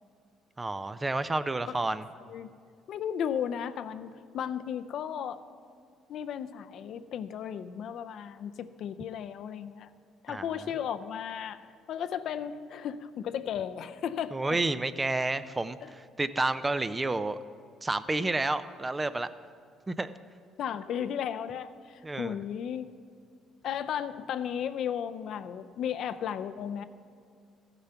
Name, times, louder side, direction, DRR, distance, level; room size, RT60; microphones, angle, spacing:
voice 1, 0.6-2.0 10.3-10.7 14.3-17.4 17.8-19.3 19.9-20.1 22.0-22.3, right 2 dB, 20° right, 13 dB, 0.4 m, -30 dB
voice 2, 2.9-5.4 6.1-9.9 10.2-14.4 20.6-22.9 23.6-26.8, left 8 dB, 65° left, 11 dB, 0.5 m, -35 dB
14.5 x 6.9 x 5.7 m, 2.2 s
cardioid pair, 90°, 0 cm